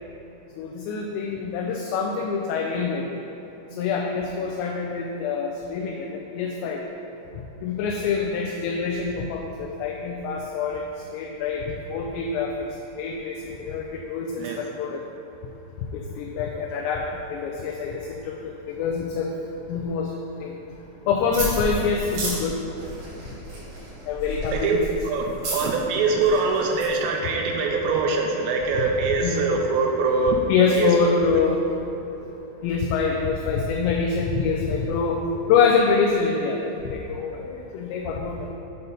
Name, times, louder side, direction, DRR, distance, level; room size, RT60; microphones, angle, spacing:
voice 1, 0.6-3.1 3.8-6.8 7.6-10.8 11.1-12.7 13.0-15.0 15.9-19.3 19.7-20.1 20.4-20.5 21.1-22.5 24.1-24.8 29.2-29.5 30.5-31.6 32.6-35.2 35.5-36.7 36.9-38.5, left 5 dB, 85° left, 1 dB, 2.6 m, -25 dB
sound 1, 21.3-27.0, right 1 dB, 55° right, 2.8 m, -33 dB
voice 2, 25.0-30.5 30.7-31.0, right 4 dB, 85° right, 1 dB, 2.6 m, -23 dB
8.0 x 4.1 x 5.4 m, 3.0 s
omnidirectional pair, 5.4 m